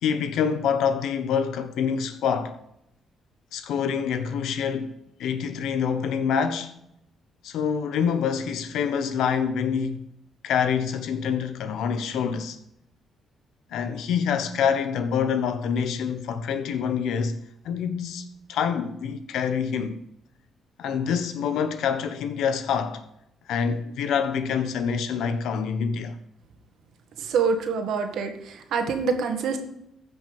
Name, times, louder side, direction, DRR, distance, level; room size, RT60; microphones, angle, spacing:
voice 1, 0.0-2.6 3.5-6.7 7.4-10.1 10.4-12.6 13.7-17.4 17.6-20.0 20.8-23.1 23.5-26.2, left 7 dB, 80° left, 1.1 m, -26 dB
voice 2, 27.3-28.3 28.7-29.6, right 5 dB, 75° right, 1.8 m, -25 dB
15.0 x 6.0 x 5.3 m
cardioid pair, 90°, 0 cm